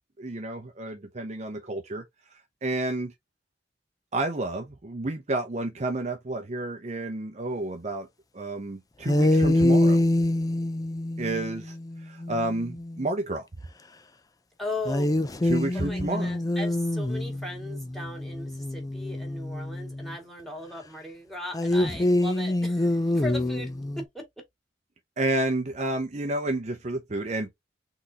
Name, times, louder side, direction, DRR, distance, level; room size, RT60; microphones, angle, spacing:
voice 1, 0.2-2.0 2.6-3.1 4.1-8.1 8.3-10.1 11.2-13.5 15.4-16.3 25.2-27.5, right 2 dB, 40° right, 0.7 m, -30 dB
sound 1, 9.1-13.1 14.8-20.2 21.5-24.0, left 1 dB, 20° left, 0.4 m, -26 dB
voice 2, 14.6-15.1 15.7-23.7 24.1-24.2, left 1 dB, ahead, 2.1 m, -37 dB
4.0 x 4.0 x 2.8 m
head